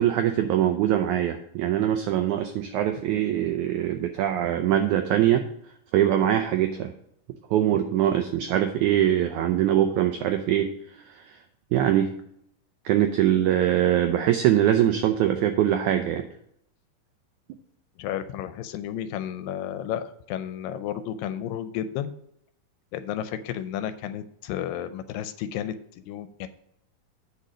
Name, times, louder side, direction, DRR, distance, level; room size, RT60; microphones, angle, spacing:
voice 1, 0.0-5.4 5.9-6.9 7.5-10.7 11.1-11.4 11.7-12.1 12.8-16.3, right 11 dB, 85° right, 7 dB, 1.7 m, -23 dB
voice 2, 18.0-22.1 22.9-25.7 26.1-26.5, left 10 dB, 80° left, 11 dB, 2.2 m, -32 dB
8.3 x 5.5 x 5.1 m, 0.74 s
omnidirectional pair, 4.1 m